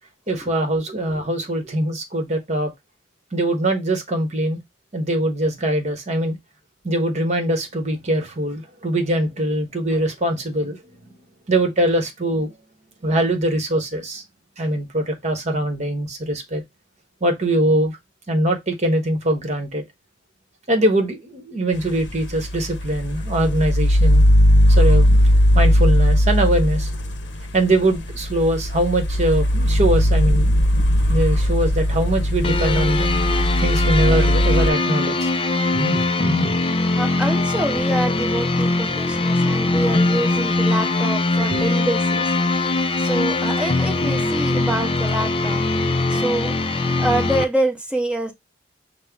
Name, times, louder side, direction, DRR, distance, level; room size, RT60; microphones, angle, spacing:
voice 1, 0.3-2.7 3.3-4.6 4.9-6.4 6.8-10.8 11.0-11.1 11.5-12.5 13.0-14.2 14.6-16.6 17.2-18.0 18.3-19.8 20.7-24.3 24.7-25.3 25.5-26.9 27.5-30.5 31.1-33.1 33.6-35.3 35.7-36.6 41.5-41.6, right 1 dB, 35° right, 1.0 m, -22 dB
sound 1, 21.8-34.7, equal, 65° left, 0.7 m, -18 dB
sound 2, 32.4-47.4, left 2 dB, 30° left, 0.4 m, -21 dB
voice 2, 37.0-42.3 43.0-48.3, right 1 dB, 5° right, 0.7 m, -26 dB
5.4 x 2.0 x 3.4 m
head